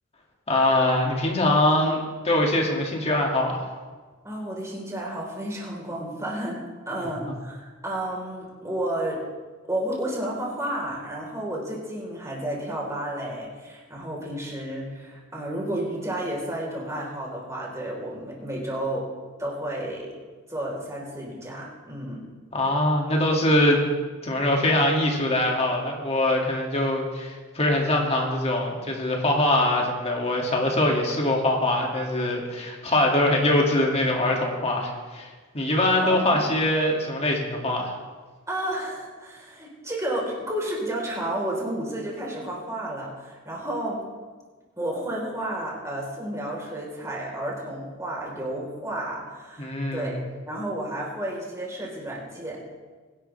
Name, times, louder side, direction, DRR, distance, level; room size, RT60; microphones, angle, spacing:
voice 1, 0.5-3.6 7.2-7.3 22.5-23.8 24.2-37.9 49.6-50.2, left 1 dB, 30° left, -1 dB, 2.4 m, -23 dB
voice 2, 4.2-6.6 6.9-9.2 9.7-19.1 19.4-20.1 20.5-22.2 35.9-36.6 38.5-44.0 44.8-50.1 50.5-52.6, right 1 dB, 15° right, -3 dB, 4.1 m, -31 dB
22.5 x 11.5 x 3.4 m, 1.4 s
head